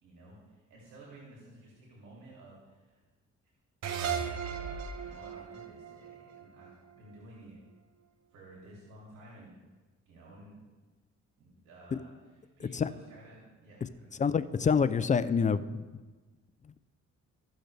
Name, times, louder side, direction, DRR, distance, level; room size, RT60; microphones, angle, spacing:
voice 1, 0.0-3.0 4.0-7.5 8.3-9.5 10.1-10.5 11.4-12.1 12.6-14.1, right 1 dB, 80° right, -5 dB, 2.7 m, -53 dB
sound 1, 3.8-7.1, right 7 dB, 60° right, 0.9 m, -37 dB
voice 2, 14.2-15.8 16.6-16.7, left 6 dB, 25° left, 14 dB, 0.4 m, -27 dB
15.0 x 6.3 x 3.4 m, 1.3 s
cardioid pair, 90°, 30 cm